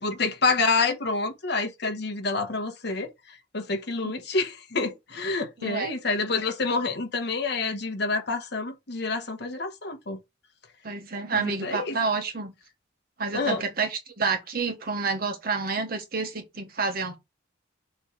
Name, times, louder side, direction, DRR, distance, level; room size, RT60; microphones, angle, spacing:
voice 1, 0.0-3.1 3.5-10.2 11.3-12.0 13.3-13.6, left 3 dB, 60° left, 1.2 m, -28 dB
voice 2, 5.6-5.9 10.8-12.5 13.2-17.2, right 4 dB, 50° right, 1.3 m, -29 dB
6.4 x 3.2 x 4.8 m
head